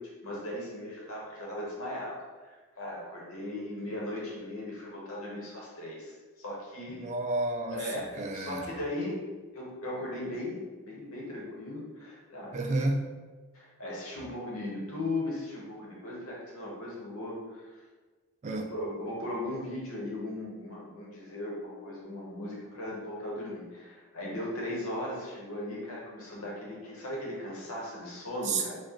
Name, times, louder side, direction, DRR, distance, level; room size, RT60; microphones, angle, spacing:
voice 1, 0.2-2.2 2.4-7.1 7.7-9.2 9.5-12.5 13.5-17.7 18.7-28.8, left 1 dB, 70° left, -4 dB, 1.1 m, -37 dB
voice 2, 6.9-8.7 12.5-13.1 18.4-18.7 28.4-28.6, right 2 dB, 30° right, 4 dB, 0.3 m, -31 dB
4.5 x 2.3 x 2.9 m, 1.3 s
head